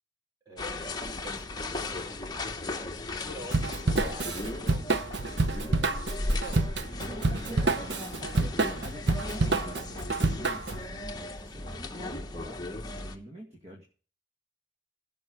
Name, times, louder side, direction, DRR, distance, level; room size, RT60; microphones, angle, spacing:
voice 1, 0.5-1.5 1.7-2.2 3.3-5.1 5.3-5.9 6.3-7.7 8.2-8.8, right 1 dB, 15° right, 0 dB, 5.2 m, -47 dB
sound 1, 0.6-13.2, left 2 dB, 20° left, 1.2 m, -36 dB
Drum kit / Drum, 3.5-10.8, right 3 dB, 60° right, 0.9 m, -28 dB
voice 2, 7.0-7.9 8.4-13.8, equal, 35° right, 0 dB, 2.2 m, -46 dB
16.5 x 5.9 x 6.7 m, 0.38 s
head